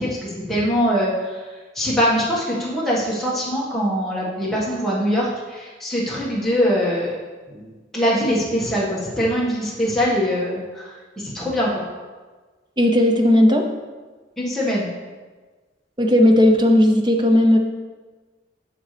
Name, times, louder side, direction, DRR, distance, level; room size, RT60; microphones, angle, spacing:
voice 1, 0.0-1.4 1.7-7.1 7.5-11.8 14.4-14.9, equal, ahead, -8 dB, 1.7 m, -23 dB
voice 2, 12.8-13.6 16.0-17.6, left 1 dB, 25° right, 3 dB, 0.7 m, -15 dB
9.9 x 6.0 x 3.4 m, 1.4 s
head